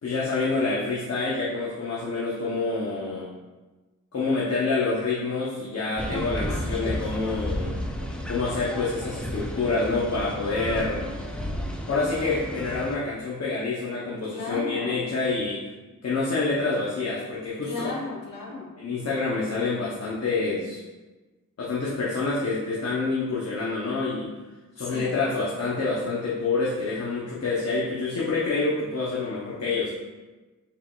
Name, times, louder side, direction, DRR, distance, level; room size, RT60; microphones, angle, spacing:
voice 1, 0.0-3.3 4.1-7.7 8.3-11.1 11.9-15.6 16.0-17.8 18.8-20.8 21.6-24.3 24.8-29.9, left 3 dB, 50° left, -6 dB, 0.8 m, -27 dB
sound 1, 6.0-13.0, equal, 5° left, 0.4 m, -32 dB
voice 2, 6.5-7.0 14.3-15.0 17.6-18.7 24.8-25.2, left 3 dB, 85° left, -3 dB, 1.0 m, -35 dB
4.2 x 3.8 x 2.3 m, 1.2 s
cardioid pair, 85°, 32 cm